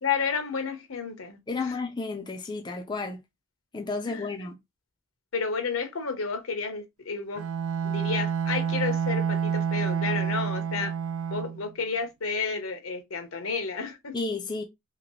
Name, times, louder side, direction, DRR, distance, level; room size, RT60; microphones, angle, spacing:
voice 1, 0.0-1.7 4.0-4.5 5.3-7.4 7.8-10.9 11.3-14.1, left 5 dB, 80° left, 0.9 m, -31 dB
voice 2, 1.5-3.2 3.7-4.6 14.1-14.6, left 3 dB, 20° left, 0.4 m, -32 dB
Bowed string instrument, 7.4-11.7, right 7 dB, 80° right, 0.3 m, -28 dB
3.0 x 2.9 x 3.0 m
head